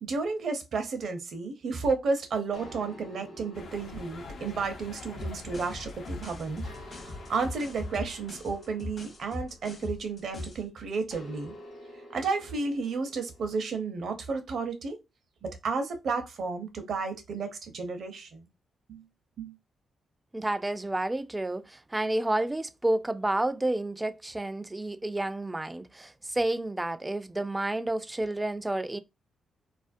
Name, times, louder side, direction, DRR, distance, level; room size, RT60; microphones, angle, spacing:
voice 1, 0.0-6.6 6.9-11.5 12.1-15.0 15.6-18.5 18.9-19.0 19.4-19.5, right 4 dB, 65° right, 0.6 m, -32 dB
sound 1, 2.5-6.1 6.6-10.3 11.1-13.8, equal, 90° left, 1.0 m, -50 dB
sound 2, 3.5-8.5, left 4 dB, 70° left, 0.4 m, -46 dB
sound 3, 5.2-10.7, left 1 dB, 45° left, 0.8 m, -40 dB
voice 2, 20.3-29.0, right 1 dB, 20° right, 0.3 m, -30 dB
2.4 x 2.1 x 2.5 m
supercardioid pair, 50°, 0 cm